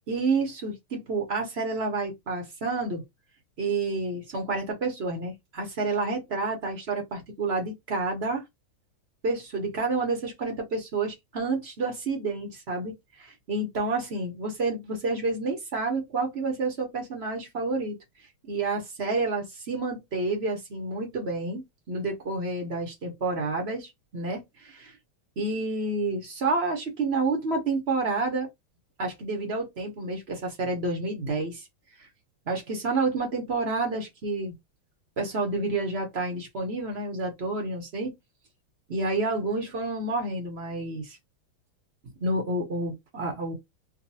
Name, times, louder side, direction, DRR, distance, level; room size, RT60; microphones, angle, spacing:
voice 1, 0.1-3.0 3.6-8.4 9.2-18.0 18.5-21.6 21.9-24.9 25.4-28.5 29.0-31.7 32.5-34.5 35.2-38.1 38.9-41.2 42.2-43.5, right 3 dB, 45° right, 0.9 m, -29 dB
3.8 x 2.3 x 2.7 m
omnidirectional pair, 2.3 m